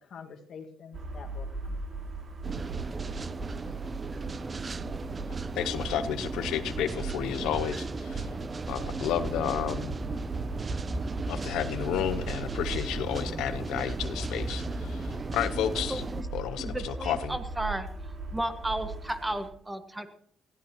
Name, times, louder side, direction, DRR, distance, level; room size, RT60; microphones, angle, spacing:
voice 1, 0.0-2.0, left 6 dB, 65° left, 4 dB, 1.9 m, -47 dB
sound 1, 0.9-19.5, right 2 dB, 45° right, 2.6 m, -37 dB
sound 2, 2.4-16.2, right 4 dB, 30° right, 0.5 m, -37 dB
voice 2, 5.6-8.3 8.7-9.9 11.3-16.0 16.3-17.4, left 10 dB, 90° left, 11 dB, 0.7 m, -31 dB
voice 3, 15.9-16.2 16.6-17.9 18.3-20.1, right 1 dB, 15° right, 8 dB, 1.6 m, -33 dB
20.0 x 14.5 x 3.0 m, 0.66 s
cardioid pair, 90°, 0 cm